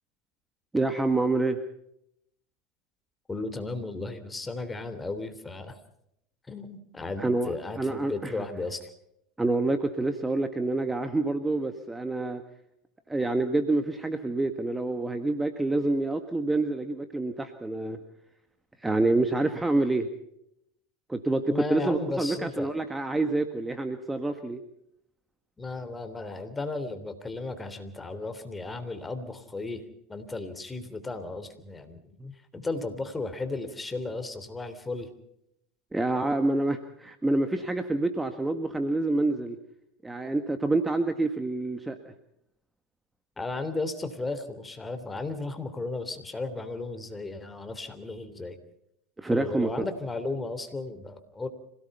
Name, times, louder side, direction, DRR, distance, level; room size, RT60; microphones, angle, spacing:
voice 1, 0.7-1.6 7.2-8.4 9.4-12.4 13.1-18.0 18.8-20.1 21.1-24.6 32.2-32.3 35.9-39.6 40.0-42.0 49.2-49.9, right 2 dB, 10° right, 8 dB, 1.6 m, -27 dB
voice 2, 3.3-5.8 6.5-8.9 21.5-22.7 25.6-29.8 30.1-32.0 32.5-35.1 43.4-48.6 49.3-51.5, left 3 dB, 15° left, 9 dB, 3.4 m, -35 dB
26.5 x 18.0 x 5.6 m, 0.78 s
hypercardioid pair, 90°, 0 cm